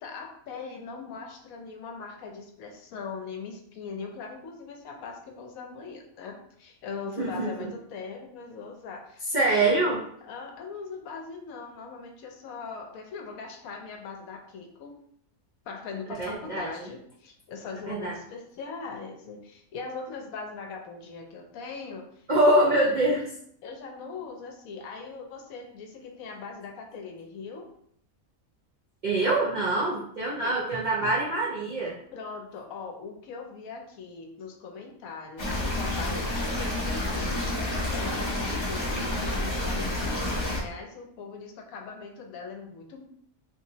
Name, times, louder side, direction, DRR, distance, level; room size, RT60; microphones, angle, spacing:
voice 1, 0.0-9.8 10.2-15.0 15.7-22.3 22.5-22.8 23.6-27.7 30.4-30.6 32.1-37.5 37.9-43.1, left 4 dB, 75° left, 3 dB, 1.0 m, -40 dB
voice 2, 7.2-7.7 9.3-10.0 16.2-16.7 17.9-18.1 22.3-23.2 29.0-32.0, right 2 dB, 70° right, -4 dB, 0.4 m, -24 dB
sound 1, 35.4-40.6, left 1 dB, 35° left, 0.5 m, -29 dB
3.1 x 2.8 x 2.7 m, 0.66 s
omnidirectional pair, 1.5 m